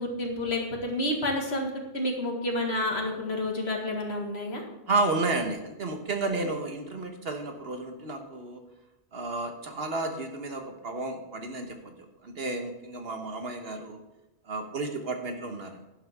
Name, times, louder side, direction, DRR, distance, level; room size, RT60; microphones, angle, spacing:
voice 1, 0.0-4.6, left 1 dB, 65° left, 1 dB, 2.1 m, -30 dB
voice 2, 4.9-8.6 9.1-14.0 14.4-15.8, right 3 dB, 60° right, 5 dB, 1.4 m, -32 dB
11.5 x 11.0 x 3.6 m, 0.97 s
omnidirectional pair, 1.2 m